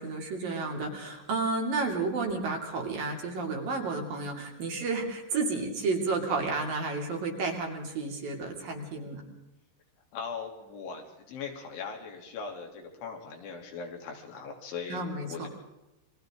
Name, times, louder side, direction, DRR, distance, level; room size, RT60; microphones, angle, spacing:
voice 1, 0.0-9.2 14.9-15.5, right 3 dB, 55° right, 1 dB, 4.3 m, -31 dB
voice 2, 10.1-15.5, left 5 dB, 85° left, 2 dB, 5.6 m, -40 dB
29.5 x 23.0 x 3.8 m, 0.99 s
omnidirectional pair, 5.3 m